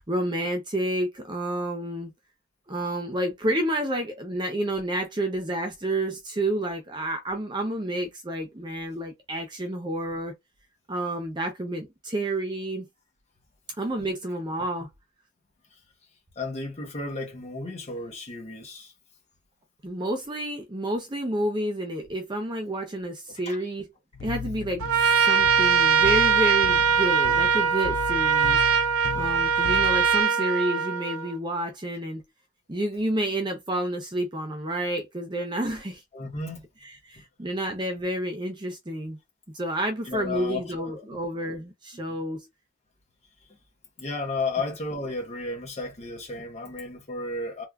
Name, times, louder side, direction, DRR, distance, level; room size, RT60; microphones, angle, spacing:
voice 1, 0.1-2.1 2.7-10.3 10.9-12.9 13.8-14.9 19.8-23.8 24.2-24.8 25.2-28.6 29.1-32.2 32.7-36.0 37.0-39.2 39.5-42.5, right 1 dB, 20° right, 0.6 m, -29 dB
voice 2, 16.3-18.9 23.4-23.6 29.0-29.1 36.1-36.6 37.2-37.3 40.0-41.2 42.1-42.2 43.5-43.6 44.0-47.6, left 3 dB, 30° left, 1.0 m, -33 dB
sound 1, 24.1-30.2, left 7 dB, 55° left, 0.4 m, -37 dB
Trumpet, 24.8-31.3, right 6 dB, 80° right, 0.5 m, -22 dB
3.3 x 2.3 x 2.3 m
head